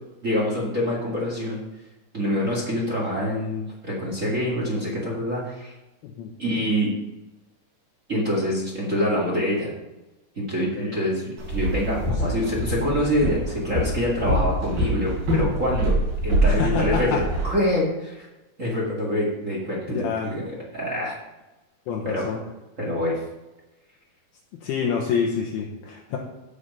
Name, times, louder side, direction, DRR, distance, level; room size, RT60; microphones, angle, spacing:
voice 1, 0.2-1.6 2.1-5.7 6.4-6.9 8.1-9.7 10.3-16.0 16.2-18.3 18.6-20.4 20.7-21.2 22.0-22.4 22.8-23.2, equal, 30° right, -3 dB, 1.4 m, -25 dB
voice 2, 10.6-11.0 12.1-12.4 16.4-17.2 19.9-20.3 21.9-22.4 24.6-26.2, left 6 dB, 75° left, -1 dB, 2.7 m, -27 dB
Walk footsteps, 11.4-17.5, right 1 dB, 60° right, 5.4 m, -25 dB
15.0 x 5.1 x 5.5 m, 1.0 s
omnidirectional pair, 4.7 m